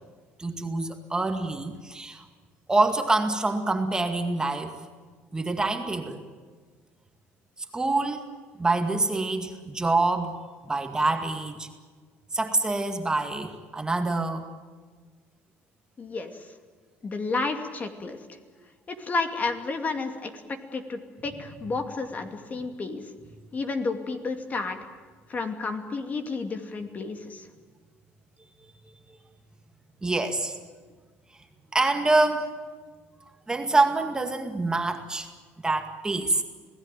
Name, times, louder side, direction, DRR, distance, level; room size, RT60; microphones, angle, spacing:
voice 1, 0.4-2.3 2.7-4.8 5.3-6.2 7.7-8.2 8.6-10.4 10.6-11.7 12.3-14.5 29.1-29.2 30.0-30.6 31.7-32.5 33.5-35.3 35.6-36.4, right 2 dB, 15° right, 5 dB, 2.2 m, -26 dB
voice 2, 16.0-16.5 17.0-18.2 18.9-23.0 23.5-24.8 25.3-27.5, left 3 dB, 30° left, 6 dB, 2.5 m, -31 dB
27.0 x 17.5 x 9.3 m, 1.5 s
cardioid pair, 110°, 5 cm